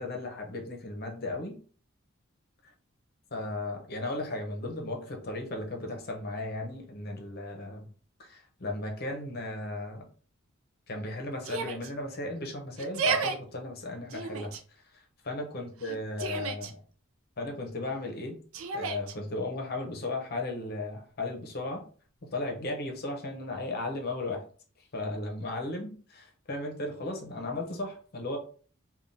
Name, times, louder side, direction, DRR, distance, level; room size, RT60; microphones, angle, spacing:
voice 1, 0.0-1.6 3.3-7.9 8.2-10.1 10.9-14.5 15.2-16.8 17.4-18.4 18.7-21.8 22.2-24.4 24.9-28.4, left 2 dB, 50° left, 2 dB, 0.8 m, -35 dB
Yell, 11.4-11.9 12.8-13.4 14.1-14.6 15.8-16.7 18.5-19.1, right 5 dB, 75° right, 0.4 m, -32 dB
3.4 x 2.3 x 2.6 m, 0.42 s
head